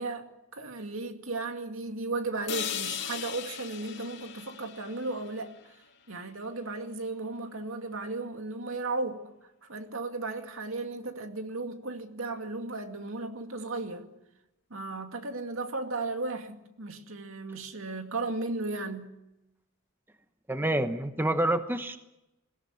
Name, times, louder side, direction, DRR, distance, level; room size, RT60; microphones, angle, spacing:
voice 1, 0.0-5.7 6.1-9.3 9.6-14.1 14.7-19.1, right 3 dB, 75° right, 2.4 m, -35 dB
sound 1, 2.5-6.5, left 9 dB, 55° left, 2.4 m, -39 dB
voice 2, 20.5-22.0, right 1 dB, 10° right, 1.0 m, -27 dB
21.5 x 17.0 x 9.9 m
head